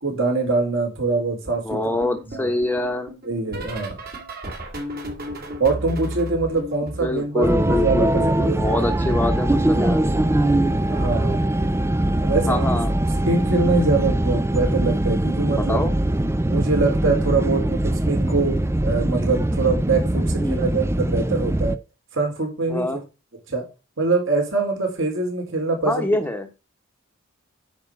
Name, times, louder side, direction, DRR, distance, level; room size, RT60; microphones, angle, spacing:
voice 1, 0.0-1.8 2.3-2.5 3.2-4.0 5.6-8.6 10.9-11.4 12.2-12.8 13.2-15.8 16.5-18.5 18.8-21.8 22.1-23.0 23.5-23.7 24.0-26.1, right 3 dB, 65° right, 2 dB, 4.2 m, -23 dB
voice 2, 1.6-3.2 7.0-10.0 12.5-12.9 15.5-15.9 20.4-20.6 22.7-23.0 25.8-26.5, left 2 dB, 10° left, 6 dB, 1.1 m, -25 dB
sound 1, 1.7-8.5 8.7-10.3 11.3-11.7 11.9-12.3 13.8-14.1 14.4-14.7 16.3-16.4, right 1 dB, 45° right, 2.9 m, -36 dB
sound 2, 7.4-21.8, right 1 dB, 10° right, 0.4 m, -22 dB
9.6 x 5.3 x 6.3 m, 0.28 s
head